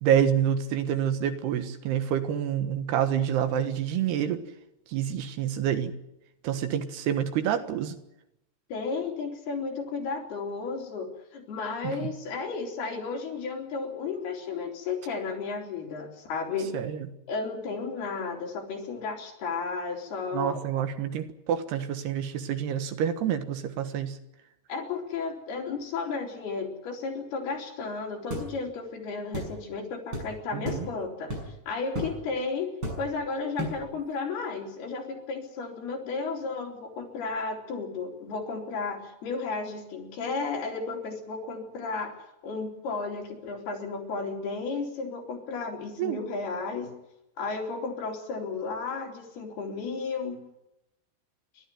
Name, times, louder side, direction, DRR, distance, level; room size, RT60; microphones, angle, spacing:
voice 1, 0.0-4.4 4.9-5.9 6.4-8.0 11.8-12.1 16.7-17.1 20.3-24.2 30.5-30.9 46.0-46.2, right 9 dB, 85° right, 9 dB, 3.5 m, -27 dB
voice 2, 8.7-11.1 11.3-16.7 17.3-20.6 24.7-31.4 31.7-32.7 33.0-42.1 42.4-46.9 47.4-50.4, left 4 dB, 75° left, 0 dB, 5.9 m, -33 dB
sound 1, 28.3-28.5 29.3-29.5 30.1-30.3 30.6-30.9 31.3-31.6 31.9-32.2 32.8-33.2 33.6-33.9, equal, 30° right, 7.4 m, -33 dB
28.5 x 13.0 x 9.3 m, 0.88 s
omnidirectional pair, 4.6 m